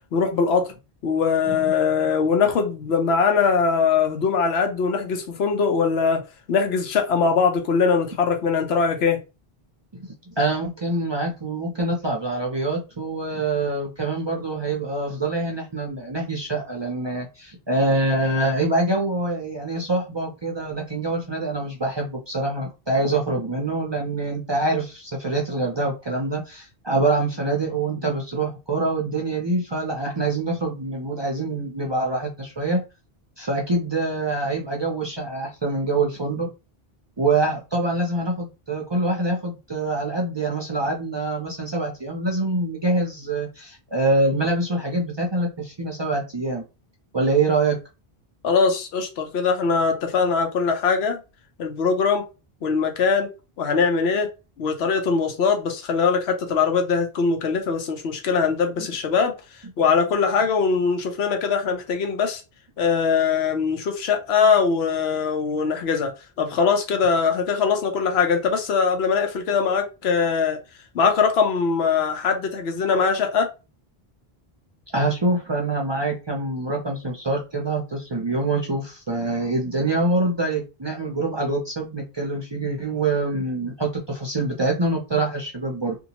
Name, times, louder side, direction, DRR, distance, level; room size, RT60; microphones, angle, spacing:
voice 1, 0.1-0.6 1.0-6.2 6.5-9.2 48.4-51.2 51.6-52.2 52.6-53.3 53.6-54.3 54.6-59.3 59.8-62.4 62.8-66.1 66.4-70.6 70.9-73.5, left 5 dB, 90° left, 0.9 m, -21 dB
voice 2, 10.0-32.8 33.4-36.5 37.2-46.6 47.1-47.8 58.8-58.9 74.9-86.0, right 2 dB, 40° right, 0.4 m, -25 dB
2.7 x 2.2 x 2.8 m
omnidirectional pair, 1.0 m